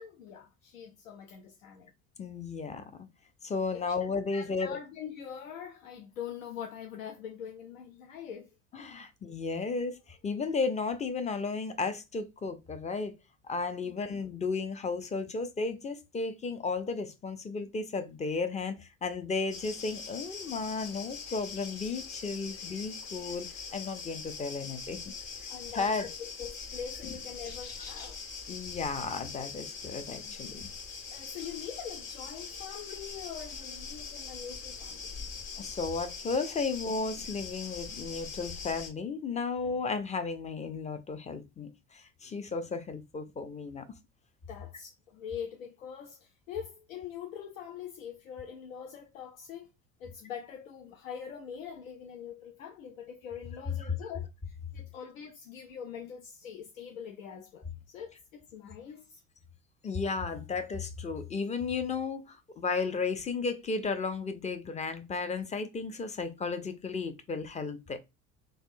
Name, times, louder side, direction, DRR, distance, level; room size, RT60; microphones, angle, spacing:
voice 1, 0.0-1.9 3.7-3.8 4.3-8.5 13.8-14.1 25.5-28.2 31.1-35.1 44.5-49.7 50.0-59.2, left 8 dB, 80° left, 0.6 m, -43 dB
voice 2, 2.2-3.1 3.4-4.8 8.7-13.1 13.4-25.0 25.7-26.1 27.0-27.1 28.5-30.7 35.6-43.9 53.8-54.0 59.8-68.0, left 4 dB, 20° left, 0.5 m, -34 dB
sound 1, 19.5-38.9, left 5 dB, 55° left, 1.9 m, -42 dB
3.5 x 2.3 x 2.5 m
hypercardioid pair, 65°, 40 cm